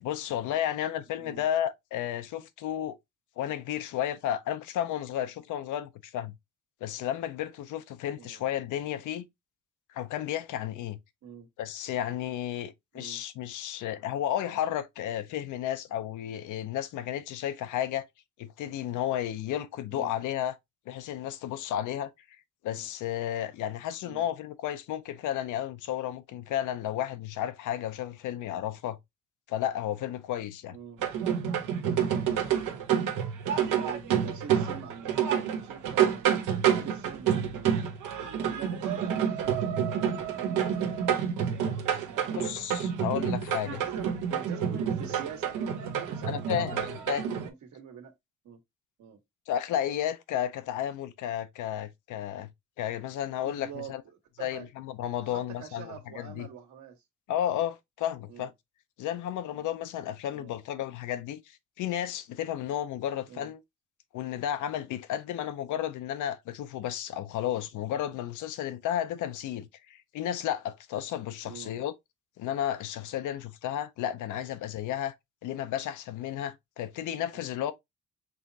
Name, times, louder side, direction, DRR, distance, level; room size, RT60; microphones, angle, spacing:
voice 1, 0.0-3.0 3.4-6.3 6.8-9.3 9.9-11.0 11.6-18.1 18.4-20.6 20.9-22.1 22.6-29.0 29.5-30.8 42.3-43.8 46.3-47.2 49.5-52.5 52.8-54.0 54.4-56.5 57.3-58.5 59.0-63.6 64.1-71.9 72.4-75.1 75.4-77.7, left 11 dB, 85° left, 0.6 m, -33 dB
voice 2, 1.1-1.4 8.2-8.4 11.2-11.5 12.9-13.2 19.9-20.1 22.7-22.9 24.0-24.3 30.7-31.0 32.5-32.7 33.7-36.3 36.7-37.7 38.1-41.5 41.9-42.5 43.6-48.1 48.4-48.6 49.0-49.2 53.4-53.9 54.4-54.7 55.2-57.0 58.3-58.5 60.3-60.5 63.3-63.5 71.4-71.7 77.3-77.5, right 7 dB, 70° right, 1.5 m, -45 dB
sound 1, 31.0-47.5, right 8 dB, 85° right, 0.9 m, -28 dB
5.4 x 2.9 x 2.7 m
cardioid pair, 90°, 30 cm